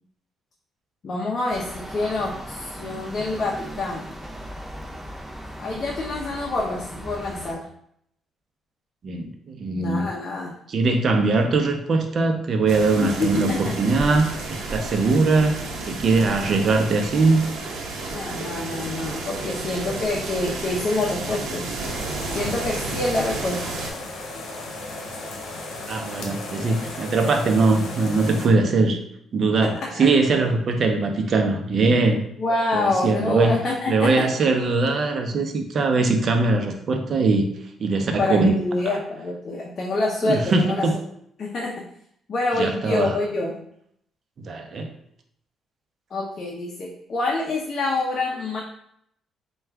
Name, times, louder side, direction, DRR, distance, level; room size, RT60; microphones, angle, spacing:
voice 1, 1.0-4.1 5.6-7.6 9.8-10.6 13.0-13.7 18.1-21.8 22.3-23.6 29.6-30.1 32.4-34.2 38.2-40.8 41.4-41.8 42.3-43.6 46.1-48.6, left 2 dB, 50° left, -2 dB, 0.6 m, -26 dB
sound 1, 1.5-7.5, equal, 5° right, 0.6 m, -37 dB
voice 2, 9.0-10.1 10.7-15.6 15.9-17.4 25.9-29.0 29.3-32.2 32.7-33.6 33.9-37.4 37.8-38.5 38.9-39.0 40.2-40.9 42.6-43.1 44.4-44.9, right 3 dB, 55° right, 5 dB, 0.6 m, -21 dB
sound 2, 12.7-23.9, right 3 dB, 85° right, 0.8 m, -32 dB
sound 3, 21.8-28.5, left 2 dB, 75° left, 0.9 m, -35 dB
4.4 x 2.3 x 3.4 m, 0.71 s
cardioid pair, 90°, 0 cm